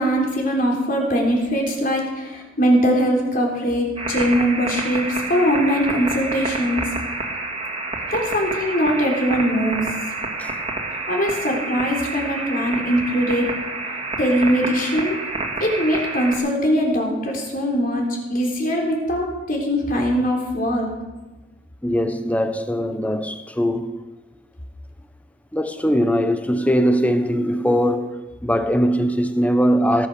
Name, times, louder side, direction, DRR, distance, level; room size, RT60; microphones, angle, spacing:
voice 1, 0.0-6.8 8.1-9.8 11.1-13.5 14.2-15.2 15.6-18.0 18.3-20.9, equal, 45° left, 3.8 m, -21 dB
sound 1, 4.0-16.4, right 2 dB, 30° right, 2.4 m, -28 dB
voice 2, 21.8-24.0 25.5-28.1 28.4-30.1, equal, 5° left, 0.9 m, -20 dB
18.5 x 9.5 x 6.8 m
head